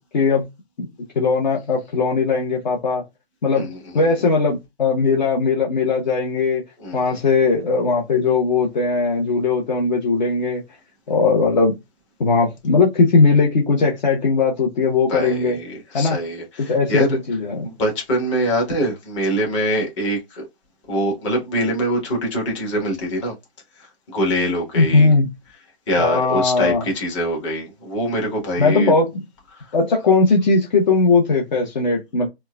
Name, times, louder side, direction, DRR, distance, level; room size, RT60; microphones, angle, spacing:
voice 1, 1.2-3.0 3.4-3.7 3.9-6.6 6.9-10.6 11.1-11.7 12.2-15.6 15.9-16.2 16.6-17.7 24.7-25.3 26.0-26.9 28.6-29.1 29.7-32.3, left 4 dB, 45° left, 0.9 m, -18 dB
voice 2, 6.8-7.2 15.1-17.1 17.6-20.4 20.9-23.3 24.1-25.1 25.9-28.9 29.5-29.6, equal, 30° left, 1.3 m, -23 dB
4.4 x 2.3 x 2.2 m
hypercardioid pair, 150°, 31 cm